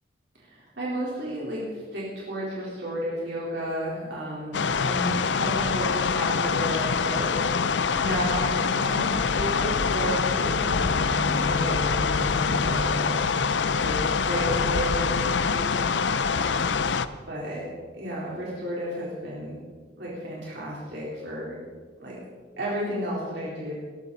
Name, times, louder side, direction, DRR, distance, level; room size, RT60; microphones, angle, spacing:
voice 1, 0.3-13.0 13.3-13.5 13.8-14.0 14.2-16.8 17.3-17.7 18.0-19.6 20.0-21.6 22.0-22.2 22.6-23.7, equal, 65° right, -6 dB, 4.0 m, -33 dB
sound 1, 4.5-17.1, left 5 dB, 70° left, 0.6 m, -25 dB
Wind instrument woodwind instrument, 10.0-14.1, left 1 dB, 45° right, 5.0 m, -35 dB
20.5 x 13.5 x 4.1 m, 1.5 s
head